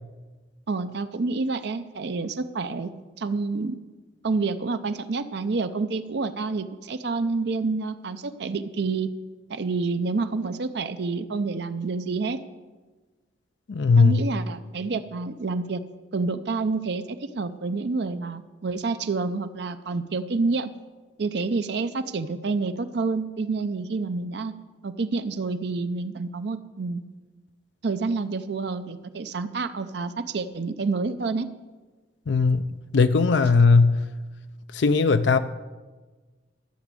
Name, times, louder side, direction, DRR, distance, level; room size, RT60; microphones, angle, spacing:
voice 1, 0.7-2.9 3.2-3.8 4.2-9.1 9.5-12.4 14.0-15.8 16.1-20.7 21.2-24.5 24.8-27.0 27.8-31.5, right 3 dB, 60° right, 10 dB, 0.6 m, -28 dB
voice 2, 13.7-14.2 32.3-32.7 32.9-34.0 34.7-35.4, left 4 dB, 70° left, 10 dB, 0.5 m, -18 dB
13.5 x 6.1 x 8.2 m, 1.3 s
head